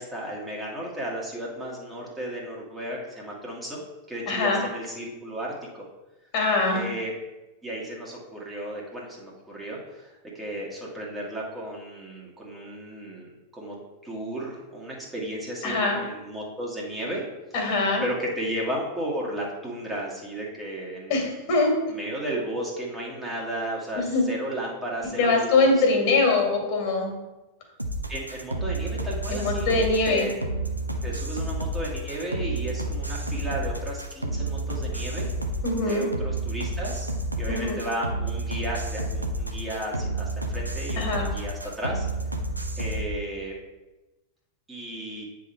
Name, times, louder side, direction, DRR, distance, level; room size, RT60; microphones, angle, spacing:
voice 1, 0.0-3.8 4.1-5.8 6.7-7.1 7.6-13.8 14.0-17.2 18.0-21.2 21.9-25.7 28.1-30.3 31.0-35.3 35.9-37.1 37.4-42.1 42.8-43.6 44.7-45.3, right 1 dB, 10° right, -4 dB, 1.8 m, -34 dB
voice 2, 4.3-4.6 6.3-6.8 15.6-16.0 17.5-18.0 21.1-21.7 24.0-24.3 25.2-27.1 29.3-30.3 35.6-36.1 37.5-37.8 41.0-41.3, left 3 dB, 45° left, 1 dB, 2.3 m, -23 dB
sound 1, 27.8-43.0, right 1 dB, 85° right, 0.7 m, -30 dB
9.0 x 3.8 x 4.4 m, 1.1 s
figure-of-eight pair, 90°, 0 cm